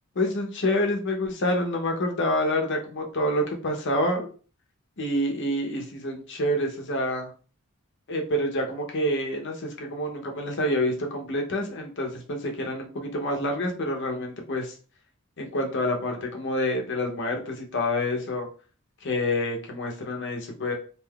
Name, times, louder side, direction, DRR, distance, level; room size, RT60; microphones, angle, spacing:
voice 1, 0.2-4.3 5.0-7.3 8.1-14.7 15.4-18.5 19.0-20.7, left 1 dB, 55° left, 2 dB, 0.7 m, -27 dB
3.5 x 2.5 x 2.3 m, 0.39 s
head